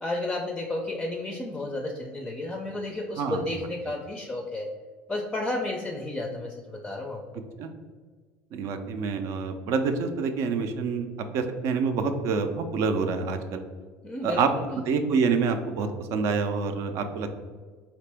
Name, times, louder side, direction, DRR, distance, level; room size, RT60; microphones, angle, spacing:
voice 1, 0.0-4.7 5.1-7.4 14.0-14.8, left 2 dB, 15° left, 1 dB, 0.5 m, -32 dB
voice 2, 8.5-11.1 11.3-13.6 14.2-14.5 14.8-17.3, right 5 dB, 60° right, 8 dB, 0.5 m, -27 dB
4.2 x 2.9 x 3.4 m, 1.5 s
supercardioid pair, 110°, 6 cm